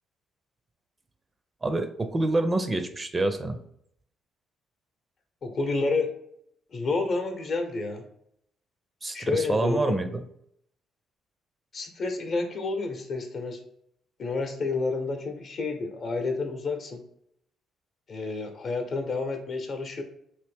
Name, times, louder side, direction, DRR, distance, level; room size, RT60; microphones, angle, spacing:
voice 1, 1.6-3.6 9.0-10.2, right 2 dB, 30° right, 8 dB, 0.4 m, -27 dB
voice 2, 5.4-6.1 6.7-8.1 9.1-10.0 11.7-13.6 14.2-17.0 18.1-20.0, left 3 dB, 55° left, 5 dB, 0.7 m, -29 dB
3.0 x 2.6 x 3.4 m, 0.71 s
hypercardioid pair, 50°, 0 cm